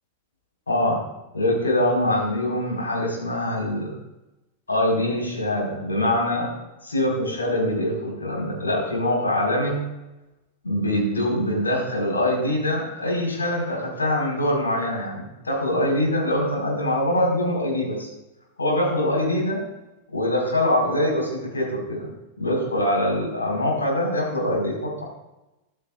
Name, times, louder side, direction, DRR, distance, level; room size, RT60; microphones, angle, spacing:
voice 1, 0.7-1.0 1.3-3.9 4.7-6.5 6.8-9.8 10.6-18.1 18.6-19.6 20.1-22.1 22.4-25.0, left 1 dB, 75° left, -3 dB, 4.9 m, -23 dB
14.5 x 12.5 x 2.5 m, 0.96 s
figure-of-eight pair, 90°, 0 cm